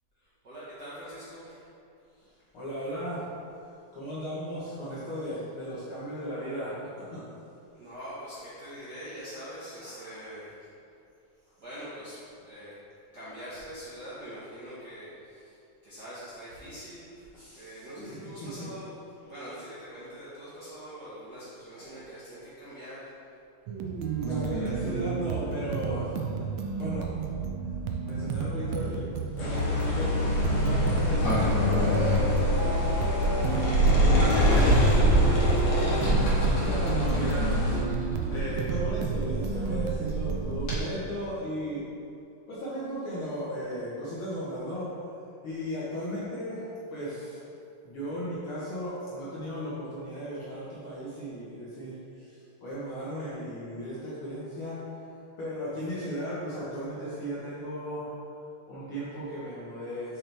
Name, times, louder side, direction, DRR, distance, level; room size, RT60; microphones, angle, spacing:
voice 1, 0.2-1.7 7.7-10.7 11.6-12.7 13.1-15.6 15.8-17.3 17.5-23.1 24.2-24.7, equal, 50° right, -12 dB, 1.3 m, -43 dB
voice 2, 2.5-3.3 3.9-7.2 9.8-10.2 17.3-18.7 21.8-22.1 24.3-26.4 26.8-27.3 28.0-34.5 35.2-41.8 42.5-44.9 45.4-47.4 47.8-54.8 55.4-58.1 58.7-60.2, equal, 55° left, -9 dB, 1.7 m, -36 dB
sound 1, 23.7-40.8, right 5 dB, 85° right, 1.5 m, -32 dB
sound 2, 29.4-37.8, left 4 dB, 90° left, 0.8 m, -29 dB
Sliding door, 30.2-40.8, right 1 dB, 40° left, 1.8 m, -25 dB
6.7 x 5.8 x 3.4 m, 2.6 s
omnidirectional pair, 3.6 m